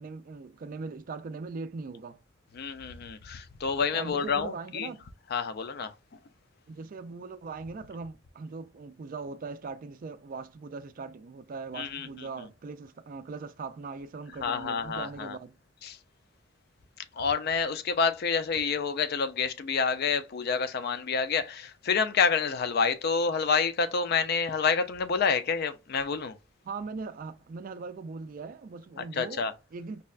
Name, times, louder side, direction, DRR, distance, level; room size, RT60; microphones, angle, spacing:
voice 1, 0.0-2.2 3.9-5.1 6.7-15.6 26.6-30.0, right 4 dB, 40° right, 0.3 m, -40 dB
voice 2, 2.5-4.9 5.3-5.9 11.8-12.3 14.4-15.4 15.8-16.0 17.2-26.4 29.0-29.5, left 5 dB, 50° left, 0.4 m, -28 dB
5.2 x 2.2 x 2.4 m
head